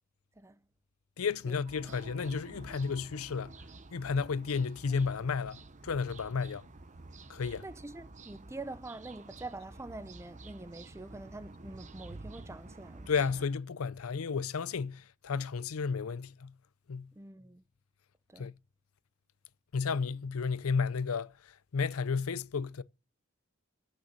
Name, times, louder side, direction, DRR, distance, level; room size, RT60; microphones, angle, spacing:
voice 1, 1.2-3.5 3.9-6.7 7.3-7.6 13.1-16.5 16.9-17.1 18.4-18.5 19.7-22.8, left 5 dB, 85° left, 0.5 m, -32 dB
Pajaros (birds), 1.6-13.5, right 2 dB, 35° right, 0.9 m, -50 dB
voice 2, 7.6-13.1 17.1-17.6 18.3-18.5, right 2 dB, 15° right, 0.6 m, -45 dB
14.0 x 6.6 x 6.9 m
head